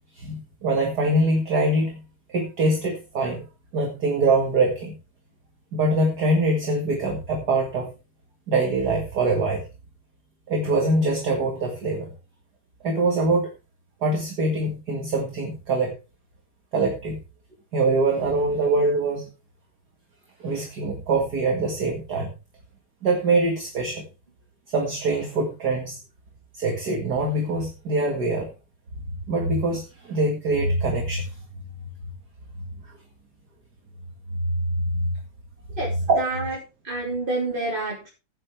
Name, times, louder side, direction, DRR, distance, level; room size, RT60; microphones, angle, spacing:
voice 1, 0.1-2.0 2.3-3.4 3.7-4.9 5.7-7.9 8.5-9.6 10.5-12.1 12.8-13.5 14.0-15.9 16.7-17.2 17.7-19.3 20.4-22.3 23.0-24.1 24.7-26.0 26.5-28.5 29.3-31.3 34.5-35.1 36.1-36.2, right 2 dB, 50° right, 2 dB, 2.3 m, -23 dB
voice 2, 35.8-36.6 36.8-38.1, right 2 dB, 25° right, -4 dB, 3.2 m, -28 dB
15.5 x 9.2 x 3.3 m, 0.29 s
omnidirectional pair, 2.4 m